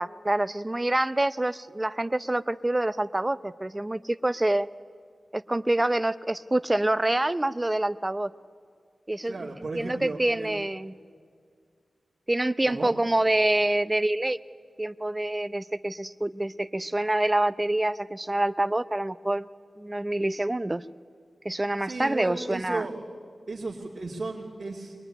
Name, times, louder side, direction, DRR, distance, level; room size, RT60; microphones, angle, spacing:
voice 1, 0.0-4.7 5.3-8.3 9.1-10.9 12.3-14.4 14.8-19.5 19.8-20.8 21.4-22.9, right 1 dB, 20° right, 14 dB, 0.6 m, -26 dB
voice 2, 9.3-10.6 12.7-12.9 21.8-23.0 23.5-24.9, right 3 dB, 45° right, -4 dB, 2.5 m, -34 dB
22.5 x 20.5 x 9.9 m, 2.1 s
wide cardioid pair, 95°, 0 cm